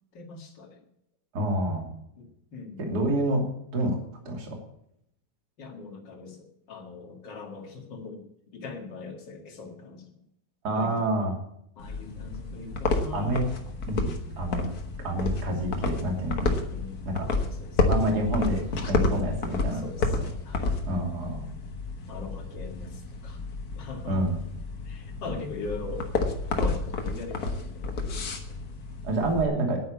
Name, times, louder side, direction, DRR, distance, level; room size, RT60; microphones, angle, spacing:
voice 1, 0.1-0.8 2.2-2.9 5.6-10.2 10.7-11.1 11.8-13.4 16.7-17.8 19.7-20.7 22.1-23.4 23.7-24.2 24.8-26.1 26.5-28.6, left 3 dB, 40° left, 3 dB, 2.0 m, -41 dB
voice 2, 1.3-1.9 2.8-3.4 3.7-4.0 4.2-4.6 10.6-11.3 13.1-13.4 13.9-14.7 15.0-16.6 17.1-17.3 17.9-19.8 20.2-20.3 20.9-21.5 24.1-24.4 29.0-29.8, right 1 dB, 30° right, 2 dB, 2.8 m, -28 dB
sound 1, 11.8-29.4, left 3 dB, 65° left, 0.9 m, -30 dB
10.5 x 9.3 x 8.5 m, 0.74 s
omnidirectional pair, 4.0 m